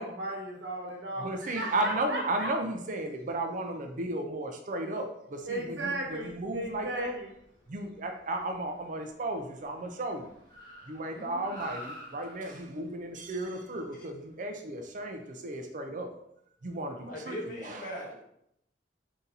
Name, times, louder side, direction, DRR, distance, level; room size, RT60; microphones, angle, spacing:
voice 1, 0.0-2.5 5.4-7.3, right 1 dB, 85° right, -2 dB, 1.3 m, -35 dB
voice 2, 1.2-7.1 7.7-10.3 10.9-16.1 16.6-17.9, right 1 dB, 45° right, 4 dB, 0.5 m, -34 dB
Car, 5.8-15.2, equal, 25° left, 1.1 m, -52 dB
voice 3, 11.1-11.5 14.0-14.1 16.9-18.2, equal, 50° left, -3 dB, 1.2 m, -40 dB
4.0 x 2.8 x 3.8 m, 0.75 s
head